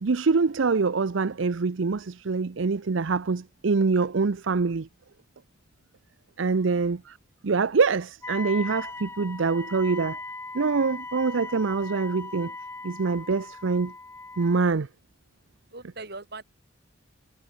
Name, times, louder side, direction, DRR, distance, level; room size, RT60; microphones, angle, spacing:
voice 1, 0.0-4.9 6.4-7.2 7.4-10.2 10.5-12.5 12.8-13.9 14.4-14.9, right 4 dB, 75° right, 0.6 m, -25 dB
Wind instrument woodwind instrument, 8.2-14.7, left 3 dB, 10° left, 0.9 m, -39 dB
voice 2, 15.7-16.4, right 3 dB, 55° right, 4.2 m, -41 dB
head